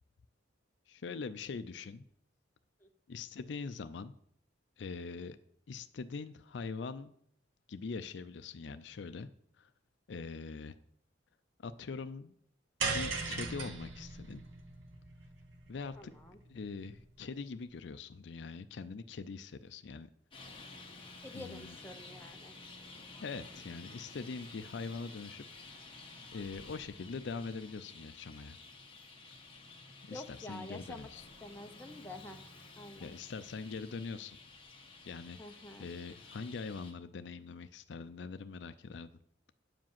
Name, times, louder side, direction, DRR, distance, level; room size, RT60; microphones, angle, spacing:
voice 1, 0.9-2.1 3.1-4.1 4.8-5.4 5.7-7.1 7.7-9.3 9.6-9.7 10.1-10.8 11.6-12.3 12.8-14.4 15.7-16.1 16.5-20.1 21.3-21.7 23.2-25.8 26.3-28.6 30.1-31.3 33.0-34.4 35.1-39.1, left 4 dB, 65° left, 11 dB, 0.4 m, -43 dB
sound 1, 12.8-17.2, right 4 dB, 85° right, 1.4 m, -39 dB
voice 2, 16.0-16.4 21.2-22.6 30.1-31.1 31.4-32.4 32.8-33.1 35.4-35.9, left 1 dB, 10° left, 4 dB, 0.8 m, -48 dB
Traffic noise roadway noise, 20.3-36.9, left 3 dB, 25° left, 1.4 m, -52 dB
9.4 x 5.0 x 7.4 m, 0.69 s
head